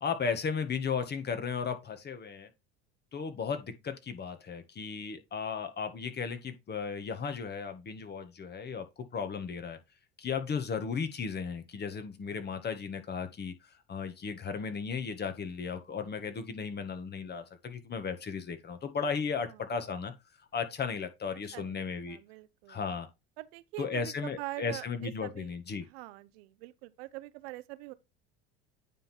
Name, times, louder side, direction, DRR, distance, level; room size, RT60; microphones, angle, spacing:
voice 1, 0.0-2.5 3.1-8.8 9.1-9.8 10.2-13.5 13.9-20.1 20.5-22.2 22.7-23.1 23.8-25.9, left 6 dB, 35° left, 1.6 m, -35 dB
voice 2, 21.5-22.8 23.4-25.5 25.9-27.9, right 19 dB, 80° right, 0.8 m, -44 dB
9.1 x 3.8 x 4.4 m
supercardioid pair, 90°, 31 cm